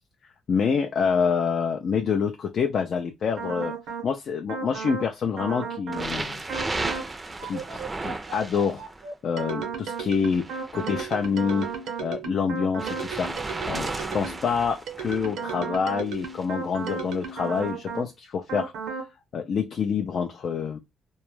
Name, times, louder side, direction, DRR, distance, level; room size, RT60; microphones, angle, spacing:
voice 1, 0.5-3.7 4.0-6.4 7.4-8.9 9.2-11.7 12.0-13.3 13.7-18.7 19.3-20.8, left 6 dB, 55° left, 0.3 m, -27 dB
sound 1, 3.4-4.1 4.5-5.1 5.4-6.1 6.5-7.1 7.4-14.5 14.9-18.1 18.5-19.1, right 6 dB, 85° right, 0.7 m, -34 dB
sound 2, 5.9-9.0 9.9-11.8 12.8-15.4 16.1-16.5 17.3-17.4, right 2 dB, 20° right, 0.4 m, -34 dB
2.2 x 2.1 x 3.1 m
cardioid pair, 90°, 0 cm